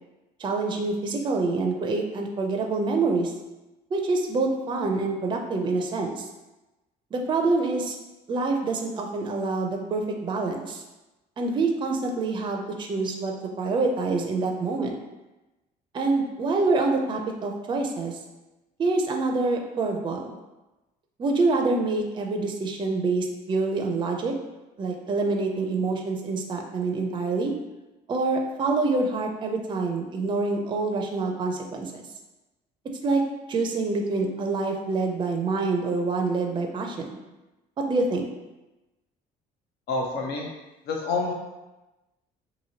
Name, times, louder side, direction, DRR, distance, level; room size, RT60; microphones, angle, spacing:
voice 1, 0.4-3.3 3.9-6.2 7.1-7.9 8.3-10.8 11.4-15.0 15.9-18.1 18.8-20.4 21.2-24.3 24.8-27.5 28.1-32.0 33.0-33.2 33.5-37.2 37.8-38.3, right 3 dB, 30° right, 2 dB, 0.4 m, -26 dB
voice 2, 39.9-40.5 40.9-41.3, left 3 dB, 75° left, 0 dB, 0.6 m, -27 dB
2.9 x 2.6 x 2.7 m, 1.0 s
cardioid pair, 110°, 17 cm